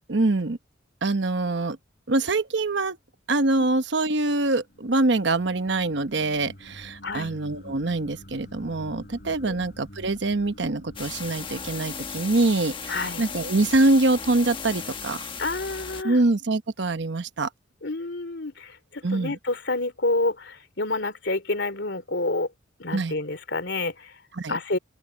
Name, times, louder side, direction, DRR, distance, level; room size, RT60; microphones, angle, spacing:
voice 1, 0.1-0.6 1.0-1.8 2.1-3.0 3.3-15.3 16.0-17.5 19.0-19.4 22.9-23.1 24.4-24.6, right 2 dB, 60° right, 1.0 m, -24 dB
sound 1, 4.2-13.3, equal, 50° left, 7.7 m, -47 dB
voice 2, 7.0-7.3 9.4-9.6 12.9-13.2 15.4-16.2 17.8-22.5 22.8-24.2 24.5-24.8, left 2 dB, 65° left, 3.4 m, -28 dB
sound 2, 11.0-16.0, left 5 dB, 25° left, 1.3 m, -36 dB
open air
head